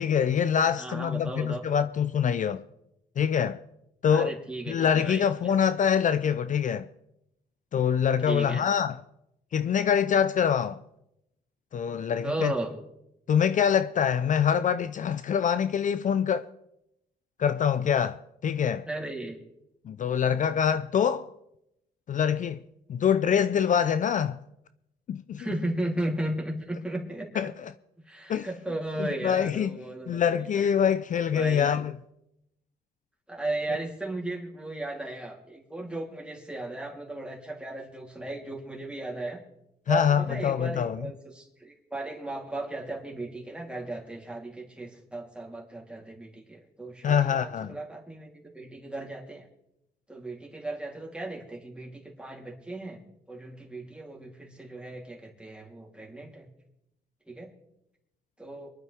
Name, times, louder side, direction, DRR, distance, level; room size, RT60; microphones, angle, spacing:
voice 1, 0.0-2.6 3.2-3.6 4.0-4.3 4.7-6.9 7.7-9.0 9.5-10.8 11.7-12.5 13.3-16.5 17.4-18.9 19.9-21.3 22.1-22.6 22.9-24.4 25.1-25.5 27.4-27.7 28.3-28.5 29.0-29.8 30.1-31.9 39.9-41.0 47.0-47.8, left 8 dB, 50° left, 0.5 m, -25 dB
voice 2, 0.8-1.6 4.1-5.6 8.3-8.6 12.2-12.7 18.9-19.4 25.4-27.3 28.1-30.2 31.3-31.7 33.3-39.4 39.9-48.3 48.5-49.4 50.1-53.0 53.3-56.5 57.3-57.5 58.4-58.7, right 2 dB, 5° right, 3.3 m, -35 dB
23.5 x 11.5 x 3.5 m
cardioid pair, 90°, 17 cm